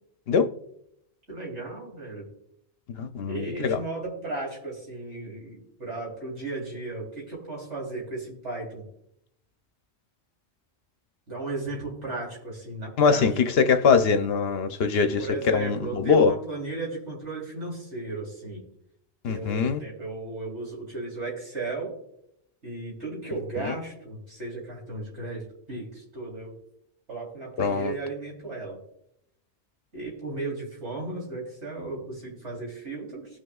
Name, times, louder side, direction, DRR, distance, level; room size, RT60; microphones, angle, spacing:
voice 1, 1.3-2.3 3.3-8.9 11.3-13.3 15.2-18.6 19.2-21.9 22.6-26.5 27.1-28.8 29.9-33.3, right 2 dB, 85° right, 3.7 m, -35 dB
voice 2, 3.0-3.8 13.0-16.3 19.2-19.8 23.6-23.7 27.6-27.9, left 5 dB, 65° left, 0.9 m, -22 dB
18.5 x 6.4 x 2.3 m
omnidirectional pair, 1.1 m